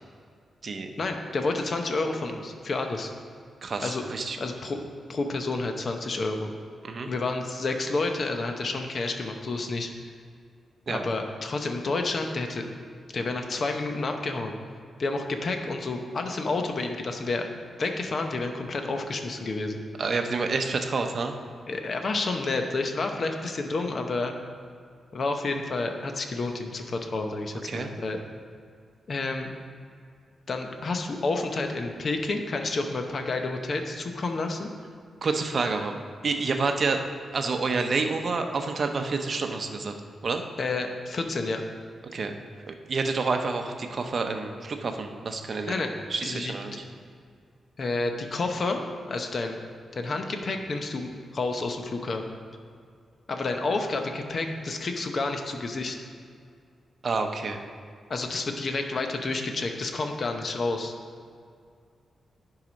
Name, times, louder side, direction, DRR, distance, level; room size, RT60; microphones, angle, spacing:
voice 1, 1.0-3.1 3.8-4.0 4.4-4.8 5.1-6.5 7.1-9.9 10.9-12.7 13.1-14.5 15.0-17.5 17.8-19.8 21.7-24.3 25.1-28.2 29.1-29.5 30.5-34.7 40.6-41.6 45.6-45.9 46.2-46.8 47.8-48.8 49.1-49.6 49.9-52.4 53.3-56.0 58.1-60.9, left 3 dB, 45° left, 4 dB, 0.8 m, -30 dB
voice 2, 3.6-4.4 6.8-7.1 10.9-11.0 20.0-21.3 27.7-27.9 35.2-35.9 36.2-37.1 37.3-39.9 40.2-40.4 42.1-42.3 42.7-45.8 46.1-46.8 57.0-57.6, right 4 dB, 45° right, 5 dB, 0.7 m, -28 dB
10.5 x 4.8 x 5.2 m, 2.2 s
wide cardioid pair, 135°, 0 cm